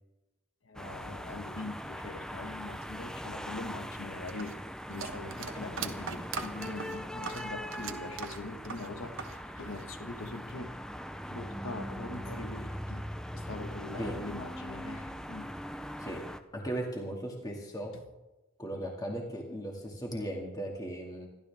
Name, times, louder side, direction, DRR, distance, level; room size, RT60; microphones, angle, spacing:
voice 1, 0.6-4.6 4.9-10.8 11.3-13.0 13.3-15.5, left 2 dB, 70° left, 7 dB, 1.5 m, -42 dB
sound 1, 0.7-16.4, equal, 5° left, 0.6 m, -41 dB
sound 2, 4.3-9.4 9.6-10.5, right 5 dB, 70° right, 1.2 m, -41 dB
voice 2, 16.5-17.9 18.6-21.3, right 1 dB, 20° left, 0 dB, 2.2 m, -37 dB
28.5 x 12.5 x 3.6 m, 1.0 s
head